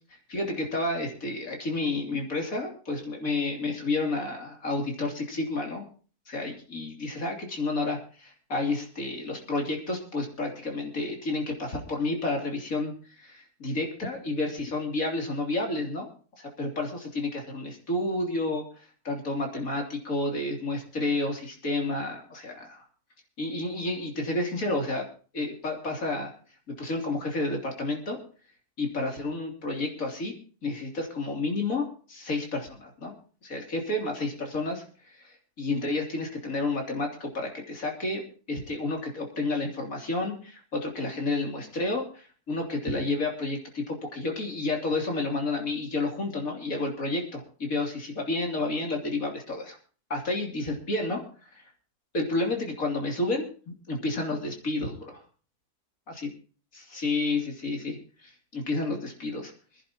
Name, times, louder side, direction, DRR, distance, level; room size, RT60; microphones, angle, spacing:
voice 1, 0.3-5.9 6.3-12.9 13.2-16.1 16.4-18.6 19.1-22.8 23.4-25.0 25.3-26.3 26.8-28.2 28.8-30.3 30.6-33.1 33.4-34.8 35.1-38.2 38.5-49.8 50.1-51.2 51.5-51.6 52.1-55.2 56.1-56.3 56.9-59.5, left 2 dB, 60° left, 2 dB, 3.5 m, -30 dB
25.5 x 10.5 x 2.9 m, 0.40 s
omnidirectional pair, 1.6 m